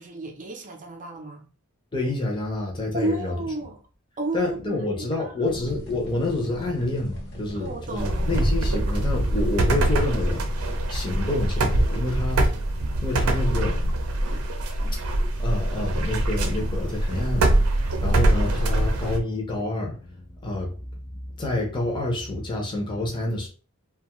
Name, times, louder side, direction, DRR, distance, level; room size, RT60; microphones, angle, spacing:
voice 1, 0.0-1.5 2.9-3.8 4.2-5.5 7.5-8.5 18.9-19.0, right 2 dB, 35° right, 0.6 m, -33 dB
voice 2, 1.9-3.3 4.3-10.4 10.9-12.4 13.0-13.8 15.4-23.5, left 2 dB, 20° left, 0.6 m, -28 dB
sound 1, 5.5-11.3, equal, 55° left, 0.9 m, -40 dB
sound 2, 8.0-19.2, right 1 dB, 80° right, 0.5 m, -23 dB
2.6 x 2.3 x 2.9 m
head